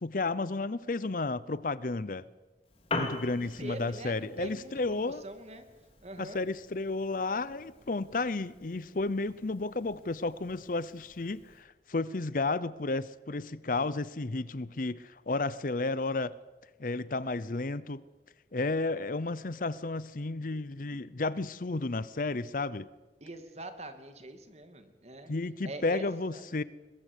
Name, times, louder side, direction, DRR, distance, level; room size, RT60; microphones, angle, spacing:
voice 1, 0.0-2.2 2.9-5.2 6.2-16.3 16.8-18.0 18.5-22.9 25.3-26.6, left 3 dB, 50° left, 0.7 m, -32 dB
Piano, 2.6-11.6, left 2 dB, 35° left, 3.3 m, -43 dB
voice 2, 3.4-5.7 6.0-6.4 23.2-25.3 25.6-26.0 26.3-26.4, right 1 dB, 40° right, 2.6 m, -43 dB
22.0 x 22.0 x 8.3 m
head